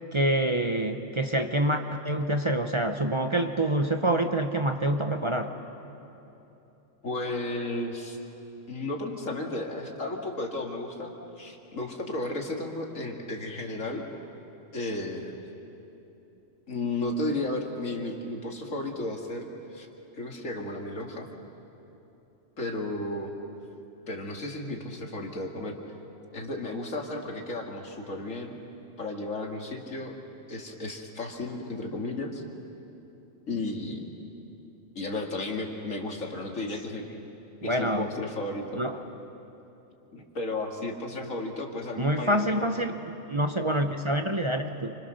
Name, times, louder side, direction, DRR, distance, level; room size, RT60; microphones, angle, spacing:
voice 1, 0.1-5.5 37.6-38.1 38.8-39.0 42.0-42.9 43.3-44.9, right 1 dB, 25° right, 5 dB, 0.8 m, -26 dB
voice 2, 7.0-8.2 8.7-14.0 14.7-15.4 16.7-19.9 20.1-21.3 22.6-23.3 24.1-25.8 26.3-28.6 29.0-30.2 30.5-32.4 33.5-34.1 35.0-37.0 37.6-38.8 40.1-42.8, left 2 dB, 85° left, 1 dB, 2.6 m, -33 dB
29.0 x 26.0 x 6.5 m, 3.0 s
omnidirectional pair, 1.3 m